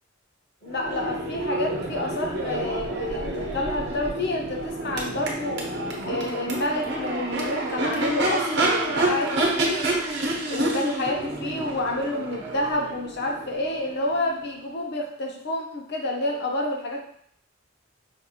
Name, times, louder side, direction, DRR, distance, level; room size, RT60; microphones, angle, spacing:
voice 1, 0.6-5.6 6.0-9.3 9.6-9.8 10.5-17.0, left 1 dB, 55° left, 1 dB, 0.7 m, -29 dB
Crowd / Race car auto racing / Accelerating revving vroom, 0.7-14.5, right 2 dB, 60° right, 0.8 m, -28 dB
5.2 x 2.5 x 2.8 m, 0.64 s
head